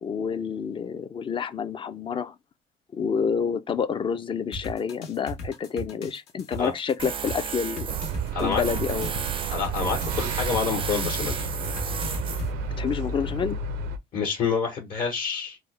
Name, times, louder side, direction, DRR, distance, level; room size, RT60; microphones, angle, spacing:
voice 1, 0.0-2.4 2.9-8.0 8.4-9.1 12.8-13.6, left 6 dB, 30° left, 0.4 m, -28 dB
sound 1, 4.5-12.5, left 1 dB, 80° left, 1.1 m, -35 dB
Tools, 7.0-13.5, right 7 dB, 30° right, 0.4 m, -34 dB
sound 2, 7.9-14.0, right 3 dB, 90° right, 0.6 m, -32 dB
voice 2, 9.5-11.5 14.1-15.6, left 6 dB, 60° left, 1.2 m, -28 dB
3.4 x 2.1 x 3.2 m
cardioid pair, 110°, 17 cm